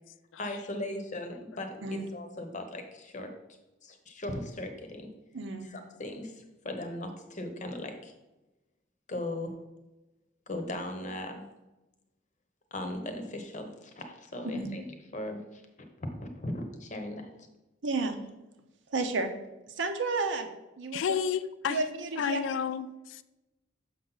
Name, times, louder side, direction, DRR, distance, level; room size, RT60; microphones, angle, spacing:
voice 1, 0.4-3.3 3.8-5.1 5.6-8.1 9.1-9.6 10.5-11.5 12.7-14.9 15.1-15.6 16.0-17.3, left 1 dB, 40° left, 0.9 m, -38 dB
voice 2, 5.3-5.7 14.5-14.7 17.8-18.2 18.9-19.3 19.7-20.5 20.8-21.2 21.7-22.4, right 3 dB, 65° right, 0.8 m, -31 dB
voice 3, 20.9-21.8 22.2-23.2, left 7 dB, 70° left, 0.3 m, -31 dB
6.3 x 5.6 x 4.0 m
head